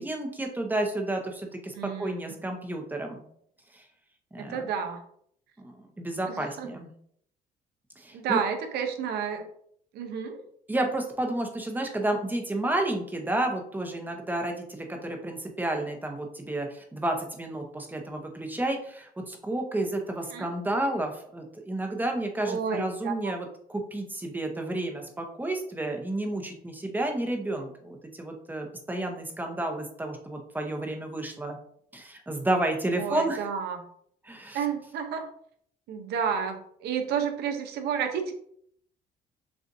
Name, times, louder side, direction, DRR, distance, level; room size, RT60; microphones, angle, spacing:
voice 1, 0.0-3.2 4.3-4.7 5.6-6.9 8.0-8.4 10.7-31.6 31.9-33.5 34.2-34.6, right 1 dB, 10° right, 3 dB, 0.8 m, -31 dB
voice 2, 1.7-2.3 4.4-5.0 6.3-6.7 8.1-9.4 9.9-10.4 20.3-20.5 22.4-23.3 33.0-33.8 34.5-35.3 35.9-38.3, right 7 dB, 75° right, 6 dB, 0.8 m, -31 dB
6.8 x 2.4 x 2.6 m, 0.66 s
cardioid pair, 110°, 17 cm